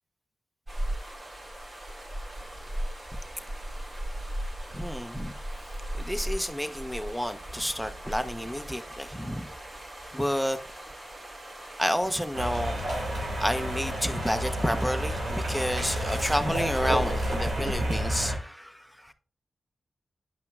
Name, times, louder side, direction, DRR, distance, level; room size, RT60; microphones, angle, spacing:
sound 1, 0.7-17.4, right 1 dB, 55° right, 3.8 m, -38 dB
voice 1, 4.7-5.3 5.9-9.5 10.1-10.6 11.8-12.7 13.4-19.1, equal, ahead, 0.9 m, -30 dB
sound 2, 12.3-18.4, right 1 dB, 85° right, 2.3 m, -30 dB
9.2 x 5.6 x 2.4 m
cardioid pair, 40°, 0 cm